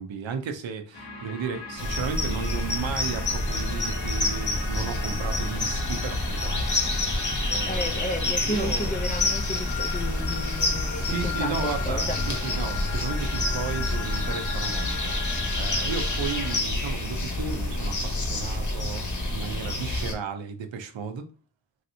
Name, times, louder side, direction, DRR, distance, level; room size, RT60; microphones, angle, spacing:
voice 1, 0.0-8.9 10.9-21.3, right 6 dB, 85° right, 0.6 m, -34 dB
sound 1, 0.9-16.6, left 4 dB, 80° left, 1.0 m, -38 dB
sound 2, 1.8-20.1, left 2 dB, 40° left, 1.0 m, -28 dB
voice 2, 7.7-12.2, left 1 dB, 20° left, 0.5 m, -33 dB
3.2 x 2.7 x 2.7 m
wide cardioid pair, 70°, 44 cm